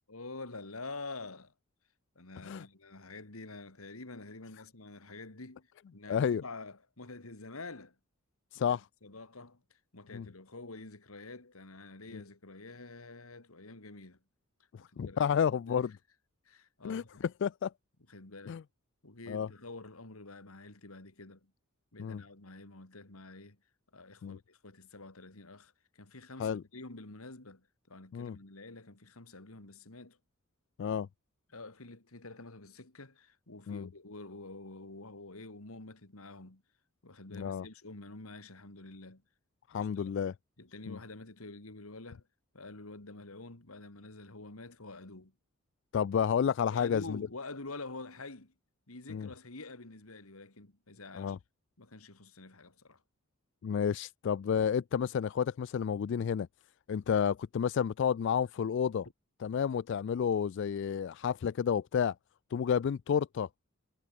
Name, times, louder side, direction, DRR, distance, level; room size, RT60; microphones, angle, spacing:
voice 1, 0.1-1.5 2.2-8.0 8.5-14.2 14.8-15.9 16.4-17.3 18.1-18.6 19.0-21.5 21.9-23.6 23.9-30.2 31.5-36.6 37.0-39.2 39.7-40.1 40.6-42.3 42.5-45.3 46.7-48.5 48.9-51.4 51.8-53.0, left 3 dB, 90° left, 2.5 m, -48 dB
voice 2, 6.1-6.4 8.5-8.8 10.1-10.3 12.1-12.2 15.0-15.9 16.8-17.7 18.5-18.6 19.3-19.5 22.0-22.2 24.2-24.4 26.4-26.6 28.1-28.4 30.8-31.1 33.7-33.9 37.3-37.7 39.7-40.3 40.9-41.0 45.9-47.2 49.1-49.3 51.1-51.4 53.6-56.5 56.9-59.1 59.4-62.1 62.5-63.5, left 7 dB, 55° left, 0.3 m, -31 dB
head